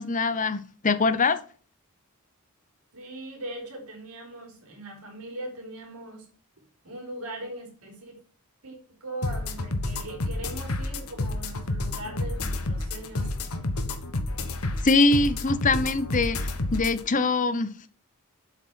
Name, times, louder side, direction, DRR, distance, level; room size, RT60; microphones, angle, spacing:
voice 1, 0.0-1.4 14.8-17.7, left 3 dB, 35° left, 0.8 m, -23 dB
voice 2, 2.9-6.3 6.8-8.2 8.6-13.3, right 1 dB, 80° right, 3.9 m, -40 dB
sound 1, 9.2-17.0, left 2 dB, 75° left, 1.4 m, -30 dB
8.1 x 6.2 x 5.8 m
head